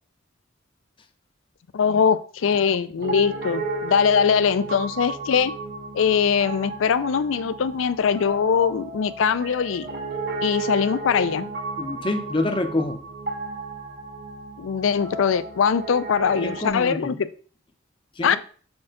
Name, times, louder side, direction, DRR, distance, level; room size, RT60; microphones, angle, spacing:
voice 1, 1.7-5.5 5.9-9.9 10.4-11.5 14.6-17.3 18.2-18.4, left 6 dB, 85° left, 15 dB, 0.4 m, -22 dB
Piano, 3.0-16.7, right 3 dB, 55° right, 1.2 m, -34 dB
voice 2, 11.8-13.0 16.4-17.2 18.2-18.4, left 2 dB, 25° left, 6 dB, 0.6 m, -26 dB
4.4 x 4.3 x 5.0 m, 0.43 s
head